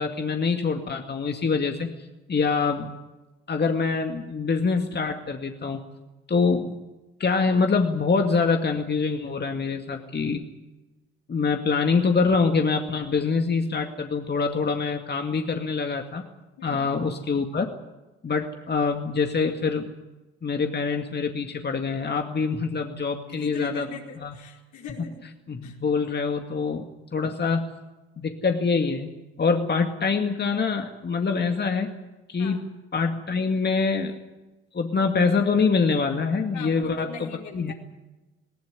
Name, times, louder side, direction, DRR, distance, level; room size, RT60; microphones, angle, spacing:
voice 1, 0.0-2.9 3.5-5.8 6.3-6.8 7.2-10.4 11.3-16.3 16.6-17.7 18.2-19.9 20.4-23.9 24.2-24.3 25.0-25.1 25.5-26.8 27.1-27.7 28.2-29.1 29.4-32.0 32.3-32.6 32.9-34.2 34.7-37.7, left 4 dB, 35° left, 5 dB, 2.2 m, -25 dB
voice 2, 16.6-16.9 23.3-25.2 25.6-25.8 32.4-32.6 36.5-37.7, left 5 dB, 65° left, 1 dB, 4.6 m, -39 dB
19.5 x 19.0 x 9.7 m, 1.1 s
hypercardioid pair, 55°, 31 cm